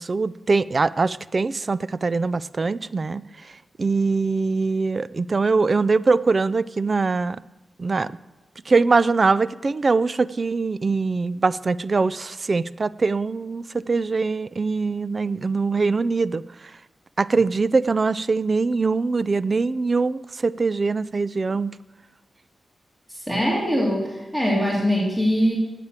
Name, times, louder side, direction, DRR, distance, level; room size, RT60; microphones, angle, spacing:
voice 1, 0.0-3.2 3.8-7.4 7.8-8.1 8.7-16.4 17.2-21.7, right 4 dB, 35° right, 18 dB, 0.3 m, -22 dB
voice 2, 23.1-25.6, equal, 5° right, -3 dB, 2.4 m, -22 dB
8.8 x 7.6 x 8.9 m, 1.0 s
wide cardioid pair, 135°, 0 cm